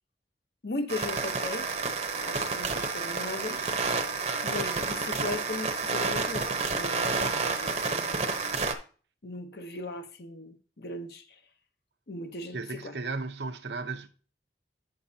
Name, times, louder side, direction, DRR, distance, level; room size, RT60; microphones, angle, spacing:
voice 1, 0.6-1.7 2.2-3.7 4.4-8.3 9.2-11.4 12.1-12.9, left 2 dB, 60° left, 0.9 m, -38 dB
sound 1, 0.9-8.7, right 4 dB, 40° right, 0.9 m, -30 dB
voice 2, 12.5-14.1, right 3 dB, 70° right, 0.8 m, -35 dB
9.5 x 6.5 x 2.8 m
head